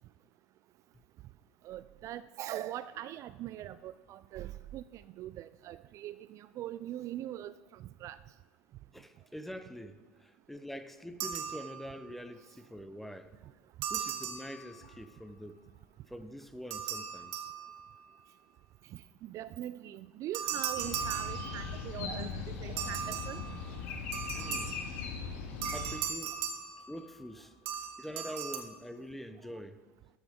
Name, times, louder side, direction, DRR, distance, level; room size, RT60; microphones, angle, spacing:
voice 1, 1.6-7.5 8.0-8.2 10.7-10.8 19.2-23.4, right 13 dB, 45° right, 0.3 m, -42 dB
voice 2, 8.9-13.3 13.9-15.6 16.1-17.5 24.3-24.9 25.7-26.4 26.9-27.5 28.0-29.8, equal, 5° left, 0.7 m, -45 dB
sound 1, 11.2-12.1 13.8-15.1 16.7-18.1 20.3-22.0 22.8-25.0 25.6-27.3 27.7-28.6, right 9 dB, 65° right, 1.2 m, -38 dB
sound 2, 20.8-26.0, left 5 dB, 65° left, 2.1 m, -39 dB
13.0 x 6.2 x 5.2 m
hypercardioid pair, 80°, 7 cm